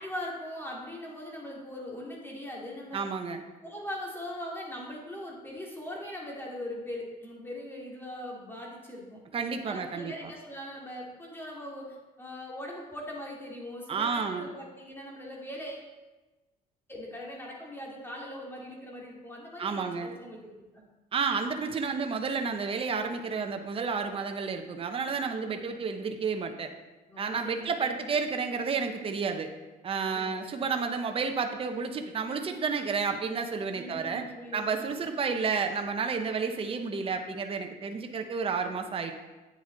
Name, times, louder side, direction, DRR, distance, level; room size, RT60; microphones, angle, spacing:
voice 1, 0.0-3.0 3.6-9.2 9.6-15.9 16.9-20.8 25.5-25.7 27.1-27.7 30.0-30.3 33.7-35.0, left 1 dB, 15° left, -3 dB, 2.3 m, -41 dB
voice 2, 2.9-3.4 9.3-10.3 13.9-14.5 19.6-20.1 21.1-26.7 27.2-29.5 29.8-34.2 34.5-39.1, right 5 dB, 35° right, 5 dB, 0.8 m, -31 dB
8.9 x 7.1 x 3.9 m, 1.1 s
cardioid pair, 110°, 17 cm